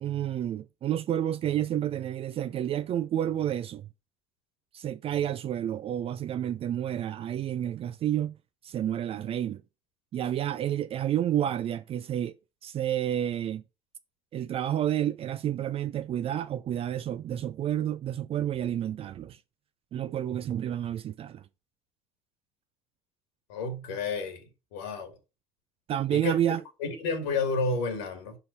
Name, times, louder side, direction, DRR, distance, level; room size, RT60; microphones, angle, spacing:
voice 1, 0.0-3.9 4.7-8.3 8.6-9.6 10.1-12.3 12.6-13.6 14.3-19.4 19.9-21.4 25.9-26.6, right 11 dB, 40° right, 0.5 m, -30 dB
voice 2, 23.5-24.5 24.7-25.1 26.1-26.4 26.8-28.4, left 4 dB, 70° left, 1.9 m, -30 dB
5.7 x 5.4 x 6.7 m
figure-of-eight pair, 60°, 15 cm